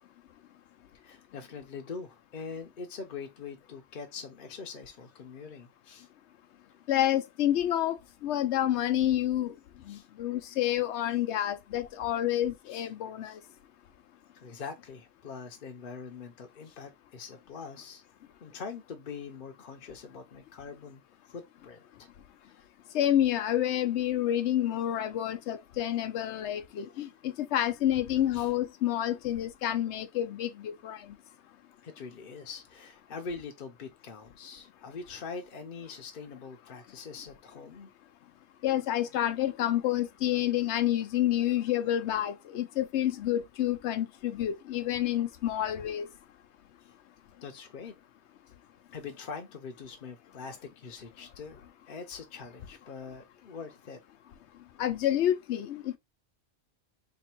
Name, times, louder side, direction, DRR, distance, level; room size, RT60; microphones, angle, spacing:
voice 1, 1.0-6.1 9.9-10.1 12.7-12.9 14.3-18.0 18.4-21.0 21.3-22.1 22.4-22.6 28.3-28.5 31.8-37.9 47.4-47.9 48.9-54.0, left 5 dB, 55° left, 0.8 m, -43 dB
voice 2, 6.9-9.5 9.9-13.4 22.9-31.0 38.6-46.1 54.8-56.0, left 12 dB, 85° left, 0.9 m, -29 dB
3.4 x 2.4 x 4.3 m
omnidirectional pair, 1.1 m